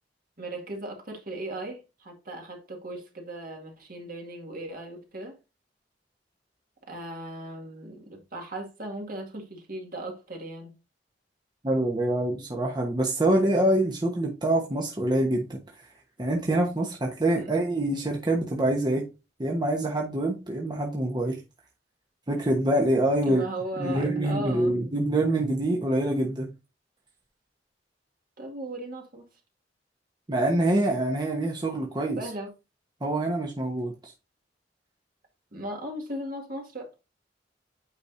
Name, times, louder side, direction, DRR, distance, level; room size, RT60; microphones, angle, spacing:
voice 1, 0.4-5.4 6.9-10.7 16.7-16.9 17.4-17.5 23.3-24.7 28.4-29.2 32.2-32.5 35.5-36.9, right 1 dB, 55° right, 2.1 m, -37 dB
voice 2, 11.6-15.6 16.2-19.0 19.4-21.4 22.3-23.4 23.8-26.5 30.3-32.2 33.0-34.1, right 1 dB, 25° right, 1.1 m, -25 dB
8.3 x 5.1 x 2.6 m
head